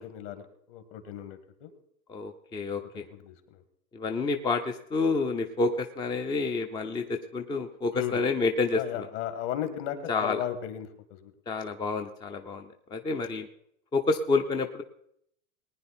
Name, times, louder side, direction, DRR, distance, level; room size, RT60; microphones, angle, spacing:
voice 1, 0.0-1.7 2.9-3.3 7.9-8.2 8.7-11.3, left 11 dB, 55° left, 9 dB, 2.1 m, -35 dB
voice 2, 2.1-3.1 3.9-9.1 10.1-10.4 11.5-13.5 13.9-14.8, left 3 dB, 10° left, 5 dB, 0.5 m, -29 dB
19.5 x 9.7 x 4.3 m, 0.72 s
hypercardioid pair, 125°, 41 cm